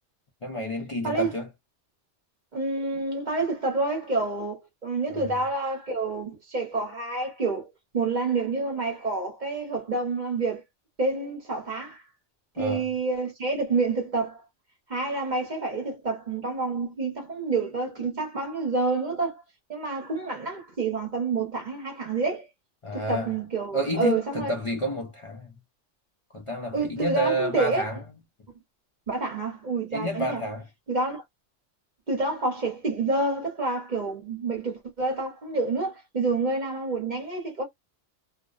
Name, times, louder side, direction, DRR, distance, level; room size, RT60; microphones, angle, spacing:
voice 1, 0.4-1.5 5.1-5.4 12.6-12.9 22.8-23.4 23.7-25.6 26.3-28.0 29.9-30.7, right 1 dB, 45° left, 0.4 m, -30 dB
voice 2, 2.5-10.6 11.0-12.0 12.6-14.4 14.9-19.4 19.7-22.5 22.9-24.5 26.7-27.8 29.1-30.4 30.9-31.2 32.1-37.6, right 3 dB, 40° right, 1.0 m, -28 dB
2.5 x 2.0 x 2.4 m
omnidirectional pair, 1.3 m